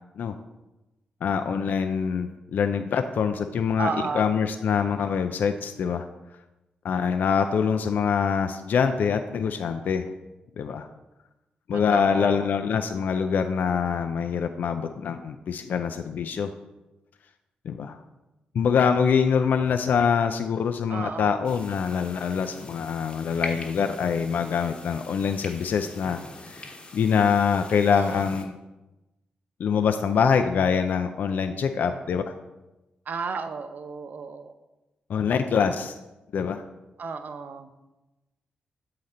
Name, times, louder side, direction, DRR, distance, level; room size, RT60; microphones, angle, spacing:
voice 1, 1.2-6.0 6.8-10.1 10.6-10.9 11.7-16.5 17.6-18.0 18.5-28.5 29.6-32.3 35.1-35.9 36.3-36.6, left 6 dB, 70° left, 6 dB, 0.4 m, -24 dB
voice 2, 3.8-4.3 11.7-12.5 20.9-21.5 27.9-28.5 33.1-34.5 37.0-37.7, right 5 dB, 60° right, 8 dB, 0.6 m, -33 dB
sound 1, 21.4-28.5, left 2 dB, 35° left, 1.2 m, -42 dB
7.8 x 3.8 x 4.2 m, 1.0 s
cardioid pair, 55°, 3 cm